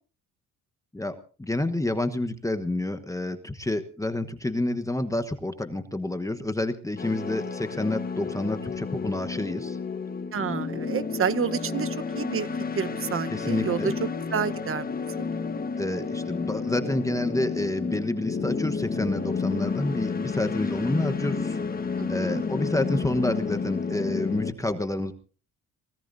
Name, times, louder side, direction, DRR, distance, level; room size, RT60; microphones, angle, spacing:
voice 1, 0.9-9.8 13.3-14.0 15.8-21.6 22.1-25.1, left 1 dB, 10° left, 8 dB, 1.2 m, -29 dB
sound 1, 7.0-24.5, left 5 dB, 30° left, 1.4 m, -31 dB
voice 2, 10.3-12.5 12.7-15.2 22.0-22.4, right 7 dB, 40° right, 11 dB, 1.1 m, -30 dB
25.5 x 18.0 x 2.7 m, 0.39 s
cardioid pair, 110°, 32 cm